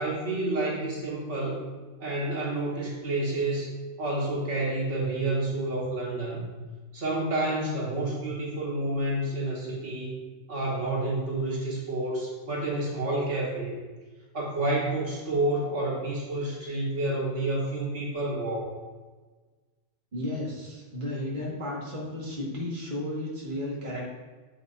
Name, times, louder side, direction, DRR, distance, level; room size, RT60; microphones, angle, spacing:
voice 1, 0.0-1.6 2.0-3.7 4.0-6.5 6.9-10.1 10.5-13.7 14.3-18.7, right 2 dB, 70° right, -5 dB, 2.0 m, -29 dB
voice 2, 20.1-24.1, left 1 dB, 45° right, -5 dB, 1.9 m, -33 dB
8.6 x 7.8 x 2.6 m, 1.3 s
omnidirectional pair, 1.3 m